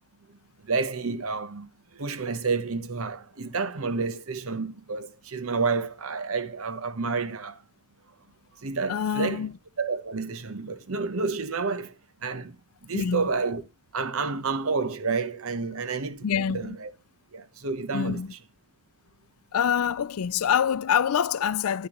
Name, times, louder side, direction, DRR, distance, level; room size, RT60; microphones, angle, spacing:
voice 1, 0.3-7.6 8.6-9.4 9.8-13.6 13.9-16.9 17.3-18.4, right 4 dB, 65° right, 0.9 m, -30 dB
voice 2, 8.9-9.5 12.9-13.3 16.2-16.8 17.9-18.3 19.5-21.9, left 8 dB, 70° left, 0.4 m, -25 dB
9.9 x 9.8 x 3.0 m
head